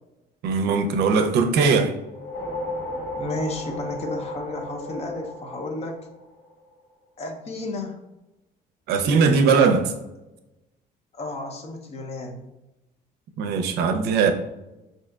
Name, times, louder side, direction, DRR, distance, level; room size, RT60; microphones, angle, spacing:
voice 1, 0.4-1.9 8.9-9.9 13.4-14.3, right 5 dB, 80° right, 5 dB, 0.5 m, -20 dB
sound 1, 2.0-6.6, left 1 dB, 75° left, 1.0 m, -34 dB
voice 2, 3.2-6.0 7.2-8.0 11.1-12.4, left 2 dB, 40° left, 3 dB, 0.6 m, -32 dB
3.8 x 2.7 x 2.2 m, 0.97 s
cardioid pair, 110°, 17 cm